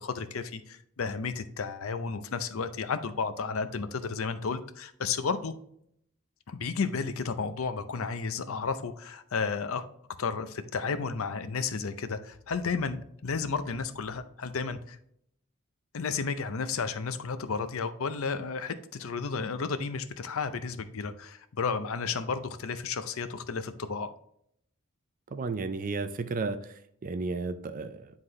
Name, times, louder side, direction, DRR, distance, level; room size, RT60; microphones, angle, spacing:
voice 1, 0.0-5.5 6.5-9.8 10.2-13.0 13.2-15.0 15.9-24.1, left 5 dB, 70° left, 11 dB, 0.6 m, -32 dB
voice 2, 25.3-28.1, right 3 dB, 40° right, 10 dB, 0.4 m, -33 dB
9.6 x 3.7 x 3.2 m, 0.71 s
head